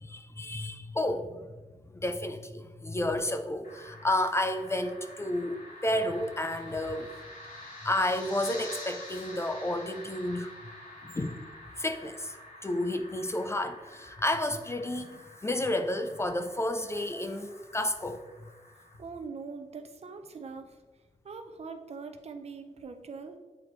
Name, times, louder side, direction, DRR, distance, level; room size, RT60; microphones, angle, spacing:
voice 1, 0.0-1.5 1.9-7.1 7.8-10.5 11.0-11.4 11.8-12.3 12.6-18.2, left 1 dB, 20° left, 8 dB, 0.4 m, -31 dB
sound 1, 3.6-19.0, left 1 dB, 75° left, 1.4 m, -48 dB
voice 2, 19.0-20.8 21.2-23.4, right 4 dB, 50° right, 7 dB, 0.7 m, -42 dB
7.7 x 4.4 x 3.1 m, 1.2 s
cardioid pair, 90°, 13 cm